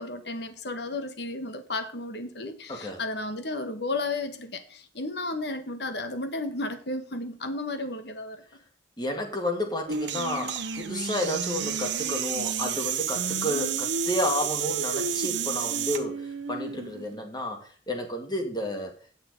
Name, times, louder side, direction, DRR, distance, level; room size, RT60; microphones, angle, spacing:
voice 1, 0.0-8.4, left 2 dB, 60° left, 1.3 m, -33 dB
voice 2, 2.7-3.0 9.0-18.9, left 1 dB, 20° left, 1.9 m, -31 dB
sound 1, 9.9-16.0, right 11 dB, 70° right, 1.1 m, -31 dB
Singing, 9.9-17.2, right 2 dB, 90° right, 0.8 m, -35 dB
9.2 x 7.3 x 5.2 m
head